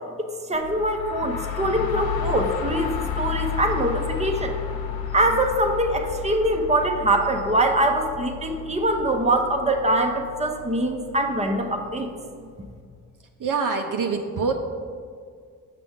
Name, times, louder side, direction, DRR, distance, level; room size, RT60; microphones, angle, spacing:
voice 1, 0.2-4.6 5.1-12.1, right 1 dB, 15° right, 3 dB, 0.9 m, -23 dB
sound 1, 0.5-12.2, left 8 dB, 70° left, 0.7 m, -32 dB
voice 2, 13.4-14.5, right 5 dB, 55° right, 3 dB, 0.7 m, -25 dB
6.7 x 6.0 x 3.6 m, 2.1 s
supercardioid pair, 45°, 38 cm